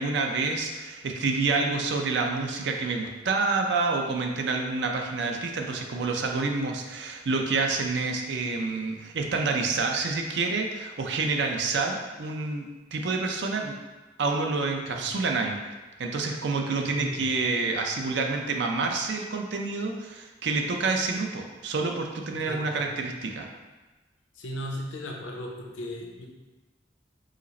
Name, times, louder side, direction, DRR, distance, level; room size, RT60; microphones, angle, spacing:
voice 1, 0.0-12.7 12.9-13.7 14.2-15.6 16.0-23.5, right 3 dB, 65° right, 2 dB, 0.5 m, -28 dB
voice 2, 16.8-17.2 22.3-22.9 24.4-26.3, left 1 dB, 85° left, 0 dB, 0.7 m, -36 dB
4.9 x 2.1 x 4.1 m, 1.2 s
head